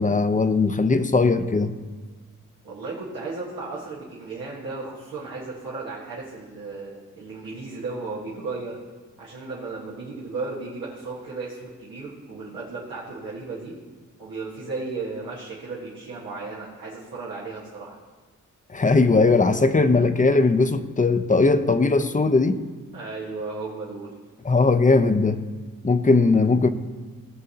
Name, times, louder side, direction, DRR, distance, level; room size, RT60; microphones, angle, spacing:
voice 1, 0.0-1.7 18.7-22.6 24.4-25.4 25.8-26.7, left 3 dB, 25° left, 10 dB, 0.6 m, -19 dB
voice 2, 2.6-8.8 9.2-13.7 14.2-18.0 22.9-24.1, right 3 dB, 90° right, -7 dB, 1.5 m, -35 dB
15.5 x 6.3 x 2.8 m, 1.4 s
cardioid pair, 40°, 33 cm